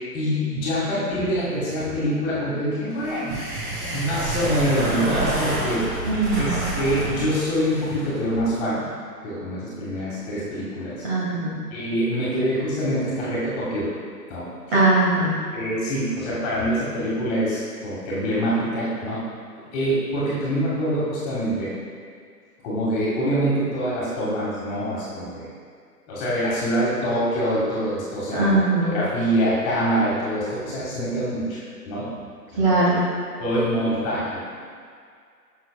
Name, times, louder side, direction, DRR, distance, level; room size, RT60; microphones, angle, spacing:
voice 1, 0.0-3.4 3.8-8.9 9.2-11.0 11.7-13.9 14.3-14.5 15.5-19.2 19.7-21.7 22.6-25.5 26.1-31.6 31.9-32.1 32.7-32.8 33.4-34.4, equal, 25° left, -8 dB, 1.8 m, -25 dB
sound 1, 2.9-8.5, right 2 dB, 20° right, 1.5 m, -28 dB
voice 2, 6.0-6.6 11.0-11.6 14.7-15.3 28.3-29.0 32.6-33.0, right 2 dB, 35° right, -5 dB, 1.8 m, -20 dB
10.0 x 6.5 x 2.3 m, 2.1 s
figure-of-eight pair, 135°, 49 cm